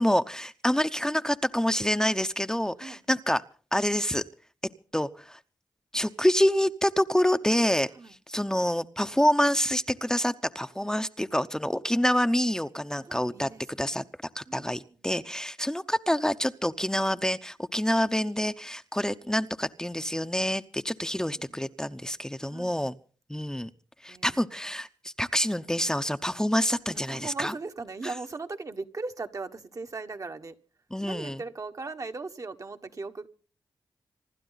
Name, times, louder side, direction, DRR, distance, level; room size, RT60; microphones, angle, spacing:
voice 1, 0.0-3.4 3.7-4.2 4.9-5.4 5.9-7.9 8.3-13.5 13.8-14.0 14.3-23.0 23.3-23.7 24.0-27.5 28.0-28.1 30.9-31.4, equal, 10° left, 0.8 m, -27 dB
voice 2, 13.1-14.1 14.5-14.7 15.3-15.4 21.4-21.6 22.5-22.8 24.1-24.4 26.9-30.6 31.0-33.3, right 3 dB, 45° right, 1.4 m, -39 dB
26.0 x 11.5 x 4.0 m
cardioid pair, 55°, 8 cm